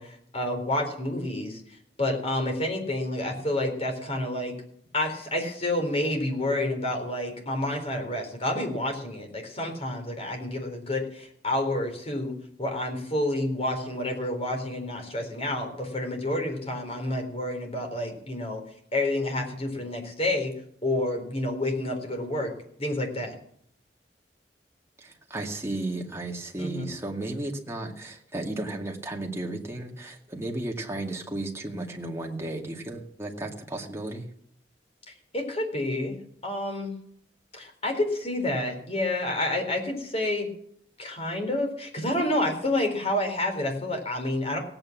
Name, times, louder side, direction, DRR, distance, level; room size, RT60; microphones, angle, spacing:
voice 1, 0.0-1.6 2.0-4.6 4.9-18.6 18.9-20.5 20.8-22.5 22.8-23.3 26.6-26.9 35.3-36.2 36.4-36.9 37.5-40.5 41.0-44.6, left 1 dB, 35° left, 3 dB, 4.1 m, -29 dB
voice 2, 25.0-34.2, right 2 dB, 15° right, 0 dB, 2.2 m, -34 dB
17.0 x 9.0 x 7.4 m, 0.65 s
head